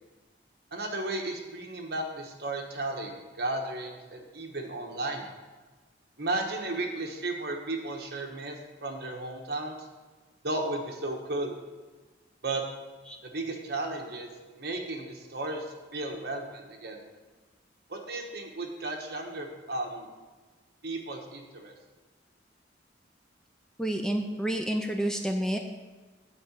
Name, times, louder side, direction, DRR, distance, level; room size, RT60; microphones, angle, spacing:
voice 1, 0.7-5.3 6.2-8.6 8.8-9.8 10.4-11.5 12.4-12.6 13.2-14.3 14.6-15.7 15.9-17.0 17.9-20.1 20.8-21.7, right 2 dB, 55° right, 2 dB, 1.2 m, -34 dB
voice 2, 23.8-25.6, right 1 dB, 5° left, 4 dB, 0.4 m, -29 dB
8.8 x 4.8 x 6.8 m, 1.3 s
head